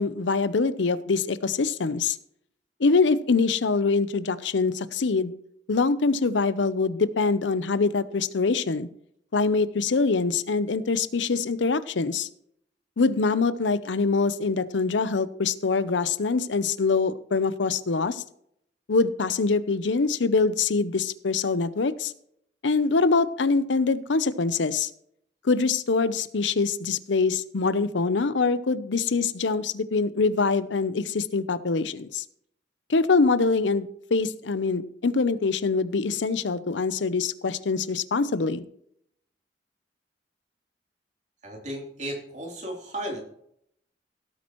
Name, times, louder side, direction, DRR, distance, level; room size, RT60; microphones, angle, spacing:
voice 1, 0.0-2.2 2.8-5.3 5.7-8.9 9.3-12.3 13.0-18.2 18.9-22.1 22.6-24.9 25.4-32.2 32.9-38.6, left 4 dB, 85° left, 14 dB, 0.7 m, -24 dB
voice 2, 41.4-43.2, right 1 dB, 40° right, 0 dB, 3.1 m, -34 dB
17.0 x 8.6 x 3.0 m, 0.70 s
head